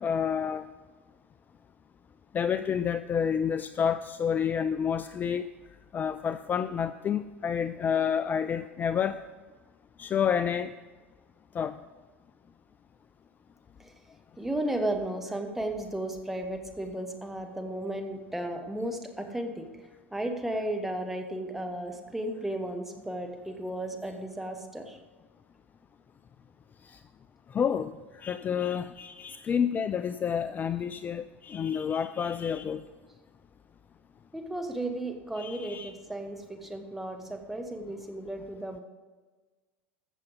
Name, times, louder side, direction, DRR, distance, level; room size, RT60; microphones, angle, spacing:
voice 1, 0.0-0.6 2.3-5.5 5.9-9.2 10.0-10.7 11.5-11.7 26.8-27.0 27.5-32.8 35.4-35.9, left 7 dB, 25° left, 12 dB, 0.4 m, -29 dB
voice 2, 14.4-19.7 20.1-25.0 34.3-38.8, right 1 dB, 5° right, 4 dB, 1.7 m, -34 dB
14.5 x 6.9 x 5.2 m, 1.3 s
hypercardioid pair, 80°, 7 cm